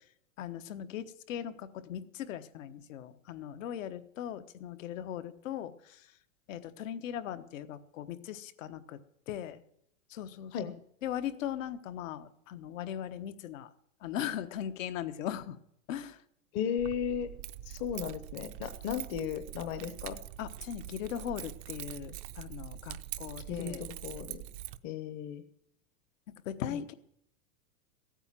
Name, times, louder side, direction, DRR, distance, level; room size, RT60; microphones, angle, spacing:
voice 1, 0.4-5.7 6.5-9.0 9.3-9.6 10.1-10.7 11.0-13.7 14.0-15.6 15.9-16.2 20.4-23.8 26.4-26.9, left 10 dB, 70° left, 11 dB, 1.3 m, -39 dB
voice 2, 16.5-17.3 17.7-20.2 23.5-24.4 24.8-25.4 26.7-26.8, left 8 dB, 35° left, 9 dB, 0.9 m, -35 dB
Keys jangling, 16.8-24.8, right 14 dB, 40° right, 0.6 m, -44 dB
15.5 x 9.0 x 7.5 m, 0.72 s
supercardioid pair, 155°, 40 cm